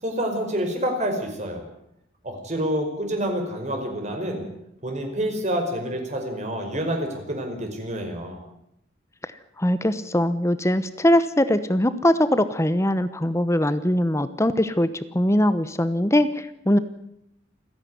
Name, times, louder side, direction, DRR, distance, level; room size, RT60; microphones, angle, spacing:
voice 1, 0.0-1.6 2.2-4.5 4.8-8.4, equal, 40° right, 3 dB, 5.1 m, -28 dB
voice 2, 9.6-14.9 15.1-16.8, left 1 dB, 15° left, 13 dB, 1.0 m, -21 dB
28.0 x 10.5 x 9.6 m, 0.79 s
head